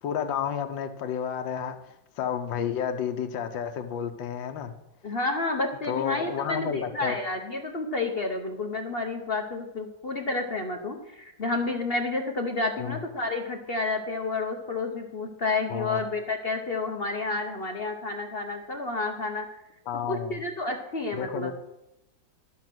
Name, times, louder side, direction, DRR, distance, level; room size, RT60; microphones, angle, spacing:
voice 1, 0.0-4.7 5.9-7.2 12.8-13.0 15.7-16.0 19.9-20.4 21.1-21.5, left 8 dB, 80° left, 7 dB, 1.6 m, -31 dB
voice 2, 5.0-19.4 20.1-21.5, left 3 dB, 45° left, 4 dB, 0.8 m, -30 dB
12.0 x 6.2 x 6.1 m, 0.89 s
omnidirectional pair, 2.0 m